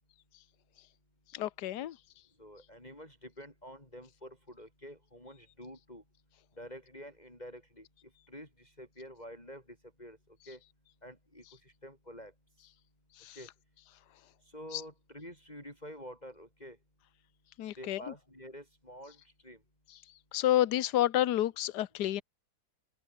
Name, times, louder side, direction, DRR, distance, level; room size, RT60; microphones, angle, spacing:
voice 1, 1.3-2.0 13.2-13.4 14.7-14.8 17.6-18.0 20.3-22.2, left 13 dB, 60° left, 1.3 m, -29 dB
voice 2, 2.4-6.0 6.6-7.8 8.3-9.6 10.0-10.2 10.5-10.6 11.0-11.4 11.8-12.3 13.3-13.5 14.5-16.8 17.8-19.2 19.4-19.6, equal, 15° left, 6.6 m, -48 dB
omnidirectional pair, 2.4 m